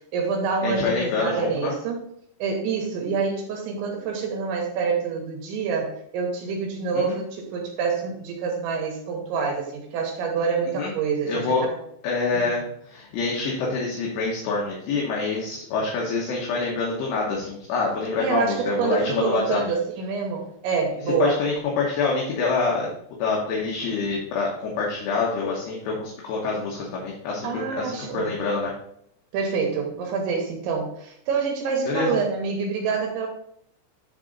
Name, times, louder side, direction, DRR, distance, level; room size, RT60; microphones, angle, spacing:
voice 1, 0.1-2.0 2.4-11.5 12.4-12.5 18.2-21.4 27.4-28.4 29.3-33.3, right 5 dB, 75° right, 1 dB, 3.1 m, -27 dB
voice 2, 0.6-1.7 6.9-7.2 10.8-10.9 11.3-11.7 12.0-19.6 21.2-22.9 23.2-28.7 31.9-32.2, left 4 dB, 70° left, -3 dB, 2.7 m, -26 dB
10.0 x 4.0 x 4.0 m, 0.71 s
omnidirectional pair, 5.9 m